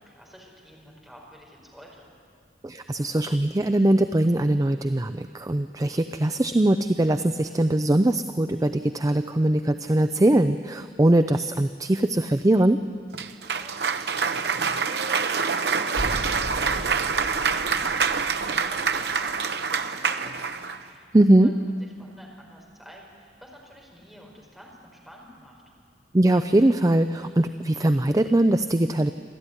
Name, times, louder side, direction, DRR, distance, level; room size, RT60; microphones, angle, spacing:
voice 1, 0.0-2.1 13.6-21.1 21.3-25.6, equal, ahead, -3 dB, 5.0 m, -49 dB
voice 2, 2.6-12.8 21.1-21.5 26.1-29.1, right 1 dB, 20° right, 9 dB, 0.4 m, -21 dB
Cheering / Applause, 13.1-20.8, right 5 dB, 65° right, 0.9 m, -26 dB
sound 1, 15.9-19.4, right 1 dB, 80° right, 1.7 m, -36 dB
27.5 x 13.0 x 9.9 m, 2.5 s
head